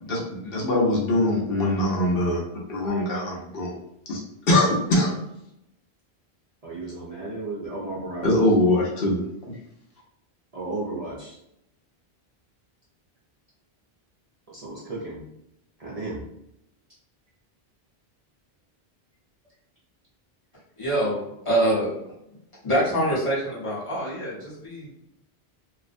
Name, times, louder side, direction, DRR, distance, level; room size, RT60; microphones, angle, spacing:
voice 1, 0.0-2.4 2.7-3.8 4.1-4.2 4.5-5.1 8.2-9.5, left 1 dB, 70° left, -3 dB, 0.9 m, -22 dB
voice 2, 6.6-8.4 10.5-11.4 14.5-15.2 15.8-16.2, right 2 dB, 50° right, -6 dB, 0.5 m, -34 dB
voice 3, 20.8-22.0 22.6-24.9, right 1 dB, 30° left, -7 dB, 0.9 m, -25 dB
2.4 x 2.1 x 2.5 m, 0.81 s
omnidirectional pair, 1.0 m